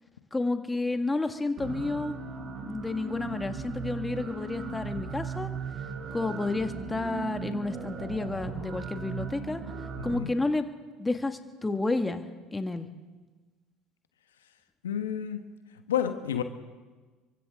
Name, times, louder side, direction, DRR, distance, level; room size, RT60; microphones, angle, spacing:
voice 1, 0.3-2.2 2.6-5.5 6.1-9.6 10.0-10.6 11.0-12.2 12.5-12.9, left 2 dB, 15° left, 7 dB, 1.8 m, -30 dB
sound 1, 1.6-10.2, right 5 dB, 55° right, 7.2 m, -37 dB
voice 2, 10.0-10.3 14.8-15.4 15.9-16.4, left 9 dB, 80° left, 7 dB, 1.3 m, -30 dB
29.5 x 24.0 x 3.8 m, 1.3 s
hypercardioid pair, 70°, 0 cm